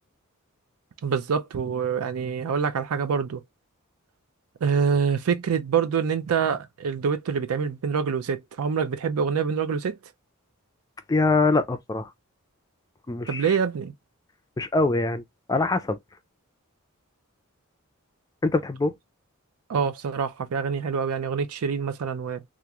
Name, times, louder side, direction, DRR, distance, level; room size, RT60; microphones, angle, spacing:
voice 1, 1.0-3.4 4.6-10.0 13.3-13.9 19.7-22.4, right 6 dB, 75° right, 0.4 m, -26 dB
voice 2, 11.1-12.1 13.1-13.5 14.6-15.2 15.5-16.0 18.4-18.9, left 3 dB, 15° left, 0.3 m, -23 dB
2.9 x 2.4 x 2.3 m
head